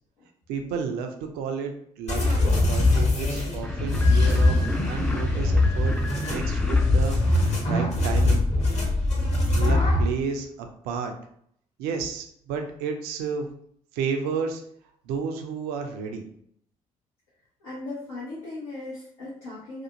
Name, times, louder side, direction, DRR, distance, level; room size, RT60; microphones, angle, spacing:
voice 1, 0.5-4.6 4.9-8.4 9.6-11.1 11.8-13.5 13.9-14.6 15.0-16.2, right 6 dB, 65° right, 4 dB, 0.4 m, -32 dB
sound 1, 2.1-10.1, left 2 dB, 40° left, 1.0 m, -22 dB
sound 2, 3.6-8.1, left 2 dB, 5° left, 0.4 m, -37 dB
voice 2, 17.6-19.8, left 2 dB, 80° left, -8 dB, 0.7 m, -37 dB
2.5 x 2.4 x 2.8 m, 0.67 s
figure-of-eight pair, 45°, 17 cm